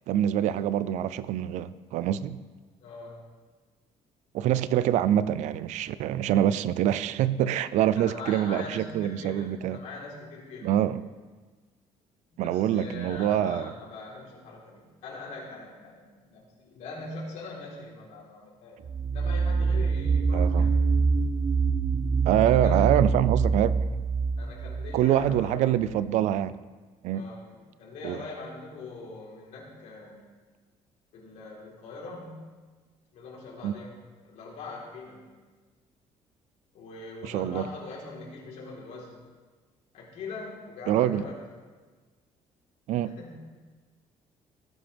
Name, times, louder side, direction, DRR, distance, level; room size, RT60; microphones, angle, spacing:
voice 1, 0.1-2.4 4.3-9.8 10.6-11.0 12.4-13.7 20.3-20.7 22.2-23.7 24.9-26.6 27.0-27.3 28.0-28.2 33.6-33.7 37.2-37.7 40.9-41.3 42.9-43.1, right 11 dB, 80° right, 16 dB, 0.5 m, -25 dB
voice 2, 2.8-3.2 7.9-10.7 12.3-18.8 19.1-20.7 22.5-22.9 24.4-25.7 27.1-27.4 27.8-30.2 31.1-32.5 33.1-34.0 34.2-35.2 36.7-39.2 39.9-41.4 43.0-43.4, left 3 dB, 75° left, -4 dB, 4.0 m, -42 dB
sound 1, 18.8-25.5, right 4 dB, 30° right, 0.4 m, -25 dB
19.0 x 9.2 x 3.5 m, 1.4 s
cardioid pair, 130°, 12 cm